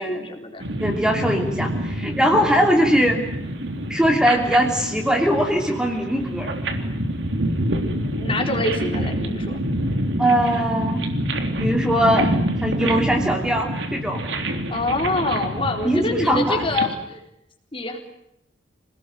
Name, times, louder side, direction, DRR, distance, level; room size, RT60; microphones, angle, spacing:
voice 1, 0.0-0.6 2.6-2.7 8.1-9.6 14.7-17.2 17.7-18.0, left 2 dB, 30° left, 3 dB, 4.0 m, -26 dB
sound 1, 0.6-16.9, right 1 dB, 75° right, 3.5 m, -27 dB
voice 2, 0.8-3.2 3.9-6.5 10.2-11.0 11.6-12.3 12.6-14.2 15.8-16.7, equal, 5° right, 2 dB, 2.8 m, -21 dB
28.0 x 19.5 x 9.4 m, 0.81 s
head